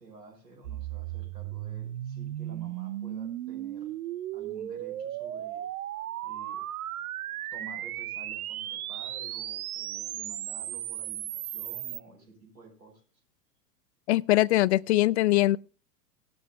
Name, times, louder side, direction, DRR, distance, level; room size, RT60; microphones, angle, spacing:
voice 1, 0.0-3.9 4.3-5.7 6.2-6.7 7.5-13.0, right 3 dB, 85° right, 5.4 m, -51 dB
sound 1, 0.6-12.0, right 13 dB, 65° right, 0.7 m, -36 dB
voice 2, 14.1-15.6, left 16 dB, 45° left, 0.4 m, -22 dB
19.0 x 12.0 x 2.2 m
figure-of-eight pair, 100°, 48 cm